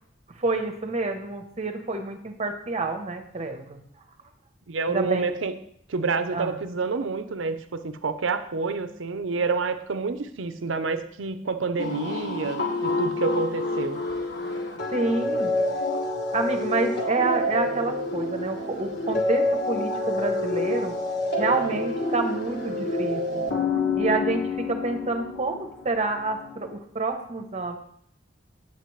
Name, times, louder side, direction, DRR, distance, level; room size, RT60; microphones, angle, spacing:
voice 1, 0.3-3.8 4.9-5.3 6.3-6.6 14.9-15.5 16.3-21.0 21.4-23.5 23.9-27.8, right 3 dB, 35° right, 6 dB, 0.9 m, -28 dB
voice 2, 4.7-5.5 5.9-14.0, right 4 dB, 80° right, 10 dB, 0.6 m, -28 dB
sound 1, 11.8-26.7, left 2 dB, 65° left, 1.5 m, -28 dB
8.4 x 8.3 x 3.2 m, 0.66 s
head